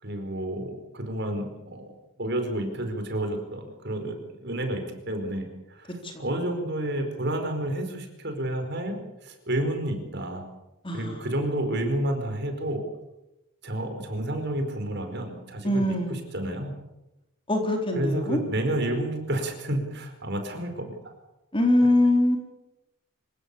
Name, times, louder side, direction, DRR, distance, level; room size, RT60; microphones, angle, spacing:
voice 1, 0.0-1.9 2.2-10.4 10.9-12.9 13.6-16.7 17.9-21.1 21.8-21.9, right 1 dB, 50° right, 5 dB, 4.7 m, -30 dB
voice 2, 10.8-11.3 15.6-16.2 17.5-18.4 21.5-22.4, left 1 dB, 25° left, 3 dB, 3.7 m, -23 dB
26.5 x 16.0 x 8.5 m, 0.95 s
head